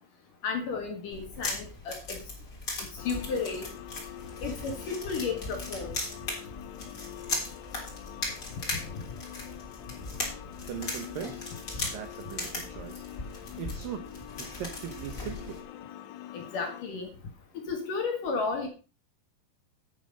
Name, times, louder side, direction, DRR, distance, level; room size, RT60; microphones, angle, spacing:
voice 1, 0.4-2.2 3.0-3.7 4.4-5.9 16.3-17.1 17.7-18.7, left 5 dB, 55° left, 3 dB, 2.6 m, -33 dB
sound 1, 1.1-15.6, left 2 dB, 25° left, 3.6 m, -38 dB
sound 2, 3.0-16.8, left 12 dB, 80° left, 3.3 m, -45 dB
voice 2, 10.7-11.5 11.9-15.6, right 10 dB, 85° right, 8 dB, 2.0 m, -40 dB
10.5 x 8.8 x 5.4 m, 0.34 s
omnidirectional pair, 5.6 m